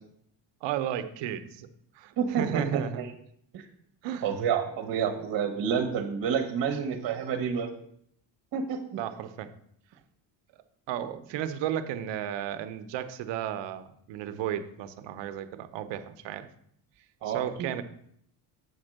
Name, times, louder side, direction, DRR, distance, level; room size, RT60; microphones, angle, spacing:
voice 1, 0.6-1.7 1.9-3.0 4.0-4.3 9.0-9.5 10.9-16.5 17.3-17.8, right 10 dB, 80° right, 10 dB, 0.8 m, -34 dB
voice 2, 2.2-3.1 3.5-3.6 4.2-7.7 8.5-8.8 17.2-17.7, right 7 dB, 55° right, 5 dB, 1.2 m, -29 dB
8.1 x 4.4 x 6.5 m, 0.68 s
cardioid pair, 145°, 43 cm